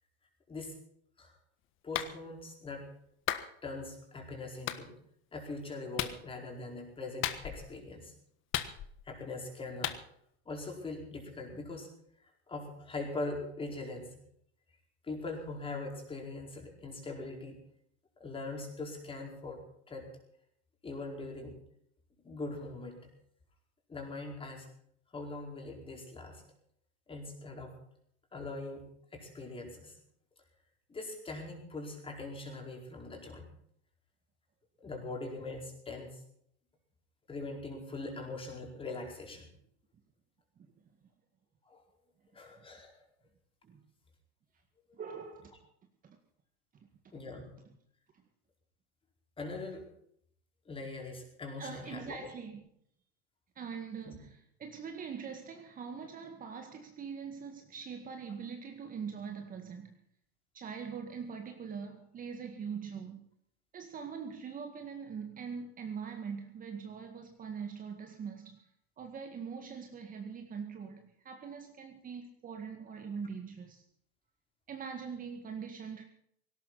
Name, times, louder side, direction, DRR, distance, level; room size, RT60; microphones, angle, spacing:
voice 1, 1.8-2.9 3.6-4.9 5.3-8.1 8.6-8.7 9.0-9.9 10.4-11.9 12.2-14.1 15.0-17.6 18.2-19.6 19.9-20.1 20.8-21.6 22.2-23.1 23.9-24.7 25.1-26.4 27.1-27.7 28.3-29.9 30.9-33.4 34.8-36.2 37.3-39.5 41.7-41.8 42.3-43.0 47.1-47.5 49.4-49.8 50.7-52.2 54.0-54.2, left 2 dB, 15° left, 2 dB, 4.7 m, -42 dB
Clapping, 1.9-2.1 3.3-3.5 4.7-4.8 6.0-6.2 7.2-7.7 8.5-9.1 9.8-10.0, left 12 dB, 40° left, 1.5 m, -34 dB
voice 2, 44.9-45.6 46.0-46.2 46.7-46.9 48.1-48.2 51.6-52.7 53.6-60.0 60.5-63.2 63.7-68.7 69.0-73.8 74.7-76.0, right 6 dB, 25° right, 4 dB, 1.9 m, -43 dB
18.0 x 18.0 x 4.2 m, 0.68 s
supercardioid pair, 140°, 34 cm